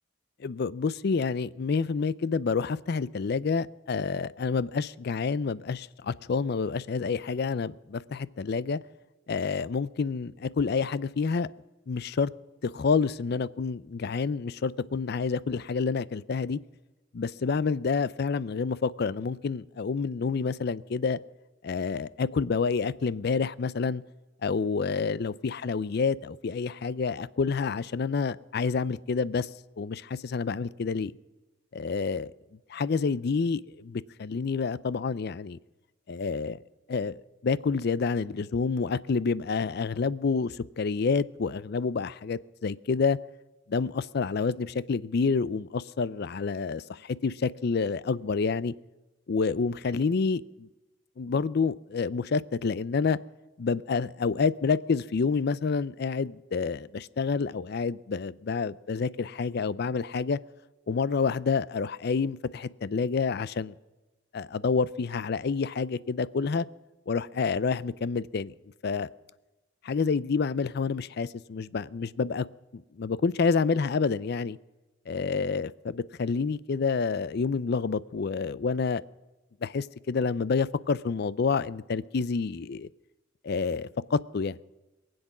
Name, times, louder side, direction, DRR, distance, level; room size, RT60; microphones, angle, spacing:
voice 1, 0.4-8.8 9.3-11.5 11.9-12.3 12.6-16.6 17.1-21.2 21.6-24.0 24.4-29.5 29.8-31.1 31.7-32.3 32.7-35.6 36.1-36.6 36.9-43.2 43.7-48.7 49.3-50.7 51.2-53.2 53.6-60.4 60.9-63.7 64.3-66.7 67.1-68.5 68.8-69.1 69.8-72.5 72.7-74.6 75.1-79.0 79.6-82.9 83.4-84.6, left 5 dB, 55° left, 19 dB, 0.4 m, -28 dB
23.0 x 7.9 x 6.0 m, 1.1 s
head